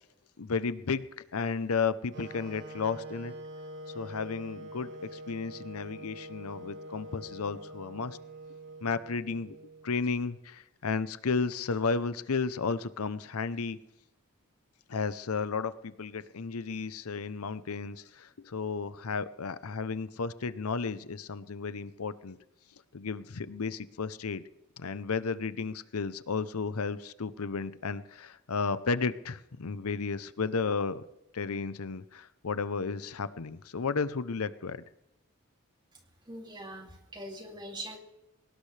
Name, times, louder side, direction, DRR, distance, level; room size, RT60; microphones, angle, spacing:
voice 1, 0.4-1.1 1.3-3.3 3.9-8.2 8.8-9.6 9.8-13.8 14.9-22.4 22.9-24.4 24.8-31.0 31.3-34.8, left 4 dB, 90° left, 14 dB, 0.7 m, -33 dB
Wind instrument woodwind instrument, 2.1-10.1, right 1 dB, 55° right, 1.6 m, -45 dB
voice 2, 36.3-38.0, right 1 dB, 20° right, 2 dB, 2.6 m, -42 dB
22.5 x 18.5 x 3.3 m, 0.90 s
head